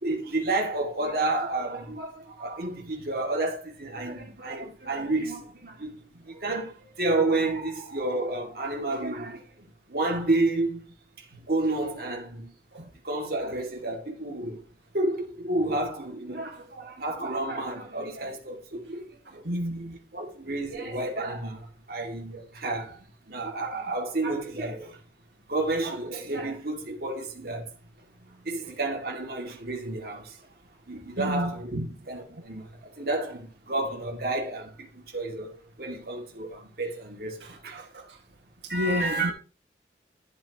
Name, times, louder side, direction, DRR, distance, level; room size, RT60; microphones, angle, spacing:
voice 1, 0.0-10.8 11.2-12.5 13.0-14.6 14.9-19.5 19.8-23.0 23.3-25.0 25.5-27.7 28.3-30.4 30.9-31.7 32.1-35.5 35.8-37.9 38.7-39.3, right 2 dB, 60° right, 2.4 m, -31 dB
voice 2, 19.4-20.0 31.2-32.0 32.3-32.4 37.4-38.2 38.6-39.3, equal, 90° right, 2.0 m, -31 dB
12.0 x 7.7 x 3.0 m
head